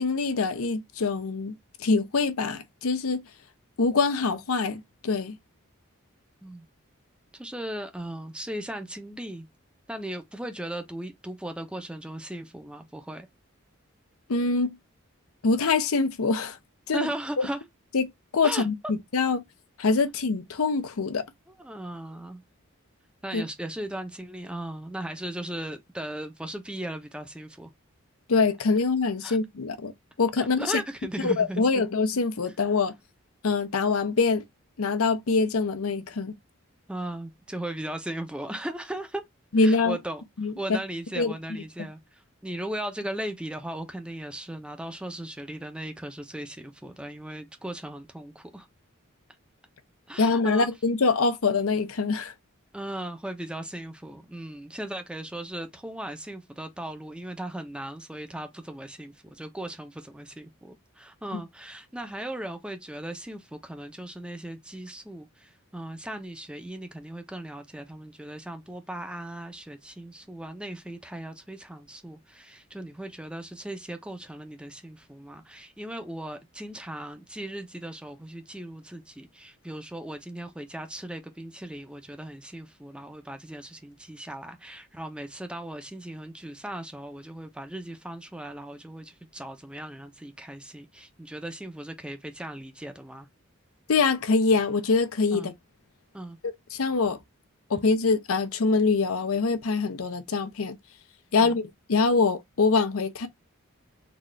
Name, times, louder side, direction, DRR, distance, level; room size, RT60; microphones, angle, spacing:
voice 1, 0.0-3.2 3.8-5.4 14.3-14.8 15.4-16.6 16.9-17.1 17.4-17.5 17.9-19.4 19.8-21.3 23.3-23.4 28.3-29.9 30.2-30.7 31.2-32.9 33.4-34.4 34.8-36.3 39.5-40.0 40.4-40.8 41.2-41.3 50.2-52.3 61.3-61.4 93.9-95.5 96.7-97.2 97.7-100.8 101.3-103.3, left 4 dB, 80° left, 0.6 m, -24 dB
voice 2, 7.3-9.5 9.9-13.3 16.9-17.6 18.4-18.7 21.5-22.4 23.2-27.7 29.2-29.4 30.4-31.9 36.9-39.2 39.6-48.7 50.1-50.7 52.7-93.3 95.3-95.5 96.1-96.4 101.3-101.6, right 1 dB, 5° right, 0.5 m, -37 dB
4.0 x 2.4 x 3.2 m
head